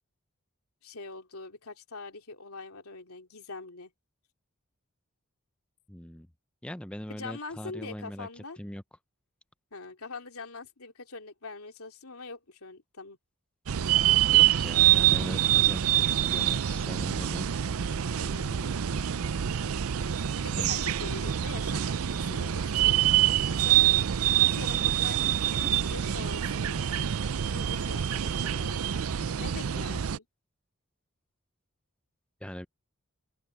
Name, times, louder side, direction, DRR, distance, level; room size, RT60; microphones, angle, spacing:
voice 1, 0.8-3.9 7.1-8.6 9.7-13.2 13.9-14.2 18.2-18.8 20.4-23.0 23.3-30.2, left 3 dB, 80° left, 2.9 m, -44 dB
voice 2, 5.9-6.3 6.6-8.3 8.6-8.8 14.3-17.5 20.5-20.9 32.4-32.7, equal, 5° left, 0.6 m, -40 dB
sound 1, 13.7-30.2, right 11 dB, 75° right, 0.5 m, -26 dB
open air
head